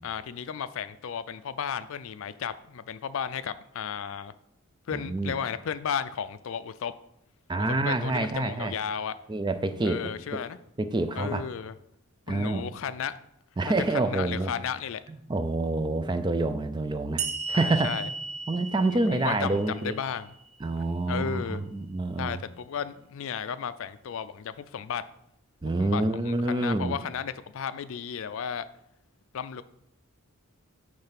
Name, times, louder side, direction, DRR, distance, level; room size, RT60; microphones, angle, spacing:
voice 1, 0.0-4.3 4.9-6.9 7.8-9.1 9.8-10.6 11.1-11.7 12.3-13.1 13.7-15.0 17.5-18.1 18.7-20.3 21.1-21.6 22.2-25.0 25.8-28.6 29.3-29.6, left 7 dB, 65° left, 14 dB, 0.4 m, -34 dB
voice 2, 4.9-5.3 7.5-8.7 9.3-10.0 10.8-11.4 12.3-12.7 13.6-14.5 15.3-18.1 18.5-19.9 20.6-22.4 25.6-27.0, right 2 dB, 20° right, 10 dB, 0.3 m, -27 dB
sound 1, 17.2-20.6, right 4 dB, 70° right, 0.7 m, -35 dB
8.8 x 3.3 x 5.8 m, 0.77 s
head